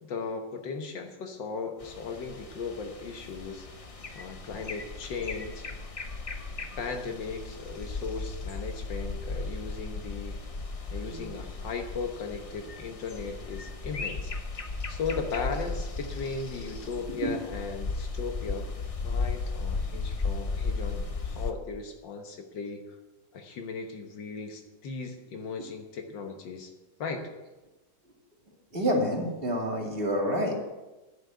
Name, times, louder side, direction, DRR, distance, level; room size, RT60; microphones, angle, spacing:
voice 1, 0.0-3.7 4.2-5.7 6.8-10.4 10.9-14.3 14.9-18.7 19.0-23.0 23.3-26.7 27.0-27.3, left 4 dB, 80° left, 5 dB, 1.8 m, -37 dB
sound 1, 1.8-21.5, left 3 dB, 45° left, 0.4 m, -36 dB
voice 2, 11.0-11.5 16.8-17.3 25.6-25.7 28.7-30.6, equal, 30° right, -1 dB, 2.5 m, -29 dB
11.0 x 6.5 x 9.0 m, 1.1 s
omnidirectional pair, 2.0 m